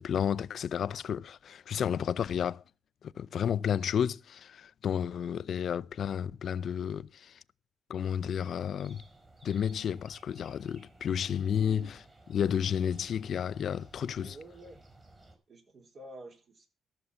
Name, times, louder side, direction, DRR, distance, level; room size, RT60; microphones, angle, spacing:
voice 1, 0.0-2.6 3.0-7.4 7.9-9.0 9.4-12.0 12.3-14.4, left 8 dB, 60° left, 0.5 m, -31 dB
sound 1, 8.8-15.4, right 2 dB, 25° right, 4.4 m, -57 dB
voice 2, 11.5-11.9 14.2-14.8 15.5-16.7, right 2 dB, 50° right, 3.5 m, -48 dB
13.5 x 6.9 x 6.9 m
cardioid pair, 90°, 0 cm